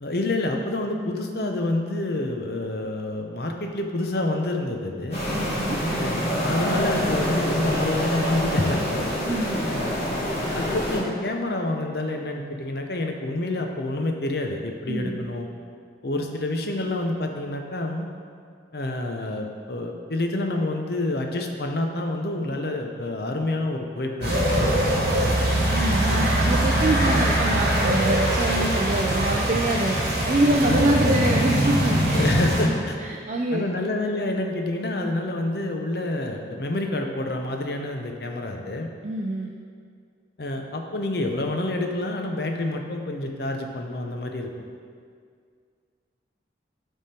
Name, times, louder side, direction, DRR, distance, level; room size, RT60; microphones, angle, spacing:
voice 1, 0.0-5.2 6.0-9.1 9.7-10.0 10.5-15.5 16.0-18.1 18.7-25.4 26.1-26.5 30.6-30.9 32.1-33.0 33.5-38.9 40.4-44.5, left 2 dB, 55° left, 3 dB, 0.7 m, -28 dB
sound 1, 5.1-11.0, equal, 35° left, 1.6 m, -26 dB
voice 2, 5.3-5.8 9.3-9.6 14.9-15.3 25.7-30.0 30.3-32.2 33.0-33.6 39.0-39.5, right 2 dB, 40° right, -1 dB, 0.4 m, -25 dB
sound 2, 24.2-32.6, right 1 dB, 55° right, 1.7 m, -22 dB
10.5 x 3.6 x 4.3 m, 2.1 s
head